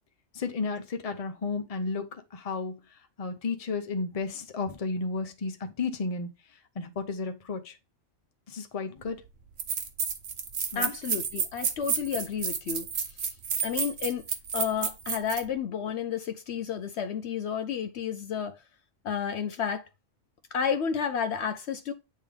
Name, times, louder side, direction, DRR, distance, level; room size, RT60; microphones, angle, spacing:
voice 1, 0.3-2.8 3.2-6.3 6.7-7.8 8.5-9.2 10.7-10.9, left 4 dB, 35° left, 0.8 m, -33 dB
sound 1, 9.0-9.1 9.6-15.4, right 6 dB, 60° right, 1.1 m, -31 dB
voice 2, 10.8-12.9 13.6-14.2 14.5-18.6 19.0-19.8 20.5-21.9, left 7 dB, 65° left, 0.8 m, -31 dB
8.7 x 3.7 x 3.4 m
omnidirectional pair, 1.3 m